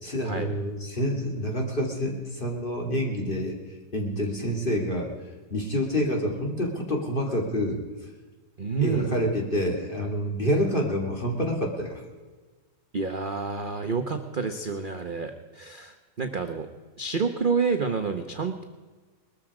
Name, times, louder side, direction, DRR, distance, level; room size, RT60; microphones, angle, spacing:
voice 1, 0.0-3.6 3.9-5.1 5.5-7.8 8.8-12.0, equal, 30° left, 0 dB, 2.8 m, -27 dB
voice 2, 8.6-9.2 12.9-16.7 17.0-18.6, right 5 dB, 35° right, 6 dB, 0.9 m, -29 dB
20.5 x 13.5 x 4.9 m, 1.4 s
omnidirectional pair, 1.9 m